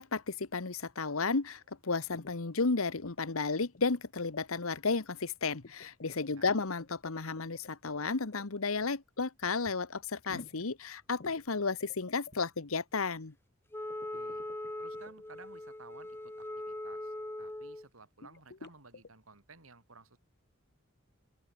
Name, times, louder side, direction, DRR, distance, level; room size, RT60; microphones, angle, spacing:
voice 1, 0.0-13.3, left 4 dB, 85° left, 1.2 m, -33 dB
sound 1, 1.1-12.8, right 1 dB, 45° right, 6.6 m, -66 dB
sound 2, 2.1-2.4 2.9-3.3 3.6-4.0 4.3-4.4 5.6-8.5 10.2-10.7 11.2-12.5 13.9-15.5 18.2-19.1, left 3 dB, 55° left, 0.9 m, -51 dB
Wind instrument woodwind instrument, 13.7-17.9, left 1 dB, 10° left, 0.7 m, -41 dB
voice 2, 14.1-14.4 14.8-20.2, right 4 dB, 80° right, 3.2 m, -56 dB
open air
head